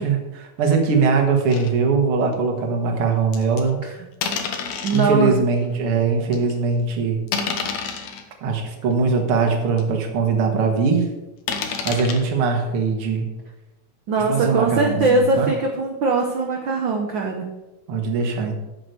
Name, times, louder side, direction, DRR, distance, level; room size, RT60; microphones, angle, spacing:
voice 1, 0.0-3.8 4.9-7.2 8.4-11.1 11.8-13.3 14.2-15.5 17.9-18.6, right 4 dB, 50° right, 3 dB, 2.2 m, -21 dB
sound 1, 1.5-1.7 2.3-2.4 3.3-3.6 4.2-5.1 5.7-5.8 6.3-6.5 7.3-8.2 8.9-9.0 9.5-9.6 9.8-9.9 11.5-12.2, left 6 dB, 65° left, 2.0 m, -28 dB
voice 2, 4.8-5.4 14.1-17.5, right 3 dB, 75° right, 2 dB, 1.1 m, -21 dB
8.6 x 6.6 x 6.8 m, 1.0 s
omnidirectional pair, 3.6 m